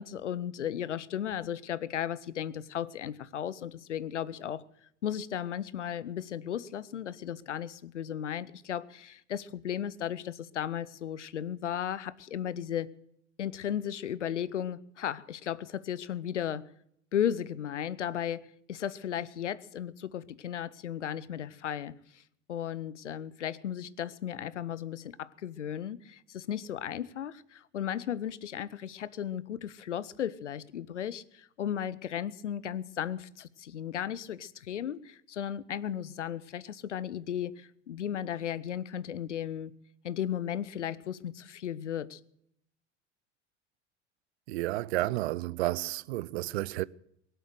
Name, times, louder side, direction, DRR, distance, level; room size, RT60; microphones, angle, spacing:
voice 1, 0.0-4.6 5.0-12.9 13.4-16.7 17.1-22.2 22.5-39.7 40.0-42.2, left 10 dB, 80° left, 0.8 m, -35 dB
voice 2, 44.5-46.8, right 17 dB, 65° right, 0.6 m, -31 dB
23.0 x 8.0 x 7.8 m
figure-of-eight pair, 70°, 35 cm